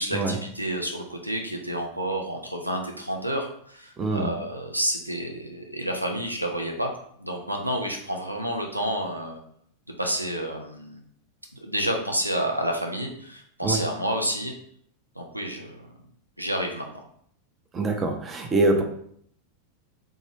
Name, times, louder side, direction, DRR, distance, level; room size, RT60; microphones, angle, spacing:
voice 1, 0.0-6.9 7.2-9.4 10.0-11.0 11.6-14.6 15.2-15.8 16.4-16.9, equal, 90° right, 2 dB, 0.4 m, -29 dB
voice 2, 4.0-4.3 13.6-13.8 17.7-18.8, right 2 dB, 20° right, 3 dB, 0.6 m, -24 dB
3.3 x 2.6 x 3.4 m, 0.66 s
figure-of-eight pair, 90°, 0 cm